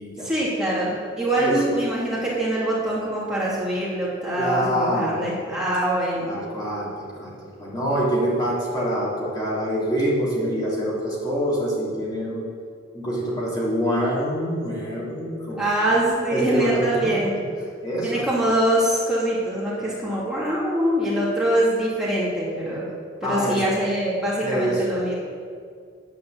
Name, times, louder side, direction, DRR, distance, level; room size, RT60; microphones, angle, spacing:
voice 1, 0.2-6.3 15.6-17.3 18.0-22.9 23.2-25.1, right 1 dB, 5° right, -8 dB, 3.0 m, -24 dB
voice 2, 4.4-5.3 6.3-12.4 12.9-15.6 16.3-17.4 17.8-18.3 23.2-23.6 24.4-24.8, equal, 20° left, -7 dB, 2.9 m, -25 dB
10.0 x 9.3 x 7.9 m, 2.2 s
head